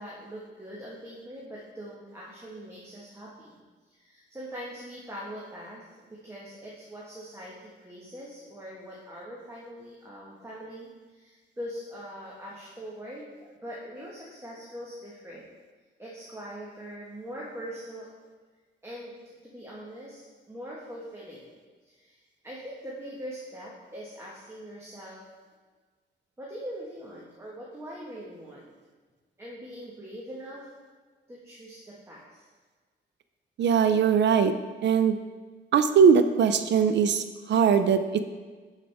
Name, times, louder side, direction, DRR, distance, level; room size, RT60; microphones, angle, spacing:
voice 1, 0.0-3.6 3.9-15.5 16.0-18.1 18.8-21.5 21.8-25.2 26.4-28.7 29.4-30.7 31.3-32.5, equal, 15° right, -5 dB, 1.4 m, -42 dB
voice 2, 33.6-34.5 34.8-35.2 35.7-38.2, right 6 dB, 65° right, 10 dB, 0.5 m, -21 dB
11.0 x 4.9 x 3.5 m, 1.4 s
cardioid pair, 95°, 20 cm